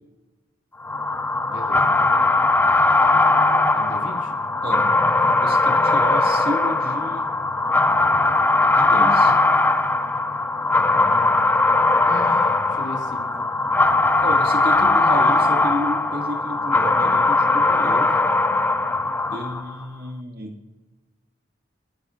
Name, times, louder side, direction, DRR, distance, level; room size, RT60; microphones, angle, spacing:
sound 1, 0.8-19.7, left 2 dB, 10° left, 0.5 m, -19 dB
voice 1, 1.5-2.0 3.7-4.3 12.0-13.5, left 1 dB, 75° left, -1 dB, 2.7 m, -37 dB
voice 2, 5.4-7.3 8.7-9.3 14.2-18.2 19.3-20.6, equal, 50° right, 1 dB, 2.1 m, -31 dB
27.5 x 11.0 x 2.5 m, 1.2 s
head